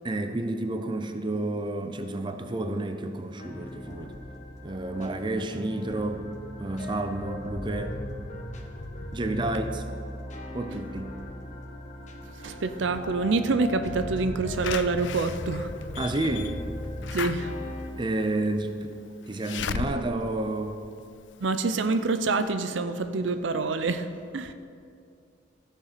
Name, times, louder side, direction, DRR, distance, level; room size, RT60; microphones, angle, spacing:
voice 1, 0.0-4.2 4.6-6.3 6.6-8.0 9.1-9.8 10.5-11.1 16.0-16.6 18.0-18.9 19.3-20.8, right 2 dB, 25° right, 7 dB, 0.5 m, -30 dB
sound 1, 3.4-17.9, left 1 dB, 40° left, 1.0 m, -38 dB
voice 2, 12.4-15.7 17.1-17.5 21.4-24.5, right 3 dB, 75° right, 10 dB, 0.5 m, -27 dB
Slam / Alarm, 14.6-21.5 21.9-22.0 22.3-22.4, left 7 dB, 70° left, 0.4 m, -37 dB
14.5 x 6.8 x 5.0 m, 2.4 s
head